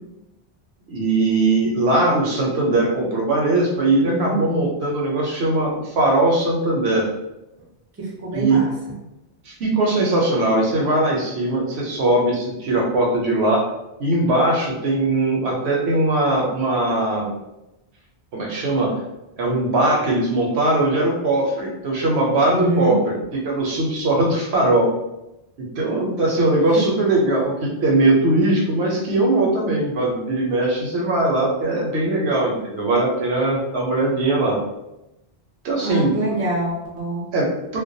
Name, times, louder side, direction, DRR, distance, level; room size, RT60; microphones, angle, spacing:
voice 1, 0.9-7.1 8.3-8.6 9.5-13.7 14.0-17.3 18.3-18.9 19.4-23.1 23.4-24.9 25.8-34.6 35.6-36.1 37.3-37.8, right 2 dB, 75° right, -2 dB, 0.9 m, -20 dB
voice 2, 4.0-4.4 8.0-8.9 22.5-23.0 26.7-26.8 35.8-37.2, right 2 dB, 20° right, -4 dB, 0.4 m, -25 dB
2.2 x 2.2 x 2.6 m, 0.92 s
omnidirectional pair, 1.1 m